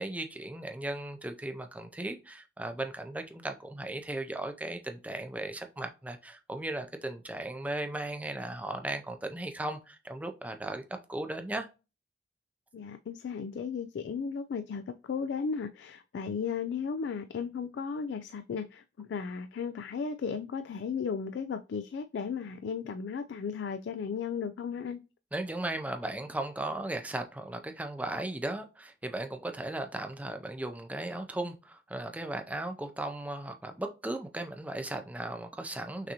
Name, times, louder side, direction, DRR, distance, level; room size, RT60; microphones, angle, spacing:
voice 1, 0.0-10.8 11.1-11.7 25.3-36.1, right 1 dB, 10° right, 0.4 m, -36 dB
voice 2, 12.7-25.0, left 6 dB, 75° left, 0.3 m, -35 dB
5.9 x 2.6 x 2.8 m
head